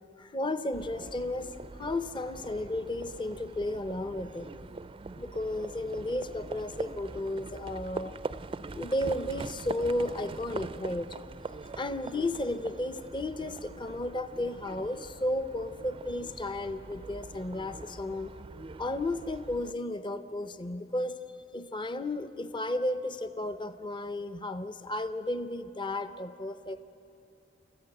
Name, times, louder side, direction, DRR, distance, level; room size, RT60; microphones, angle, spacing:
voice 1, 0.2-1.5 1.8-4.5 5.2-8.1 8.7-11.2 11.8-18.3 18.8-21.2 21.5-26.8, left 1 dB, 25° left, 11 dB, 0.6 m, -33 dB
Livestock farm animals working animals, 0.7-19.7, right 3 dB, 30° right, 0.4 m, -43 dB
29.5 x 14.5 x 7.8 m, 2.9 s
head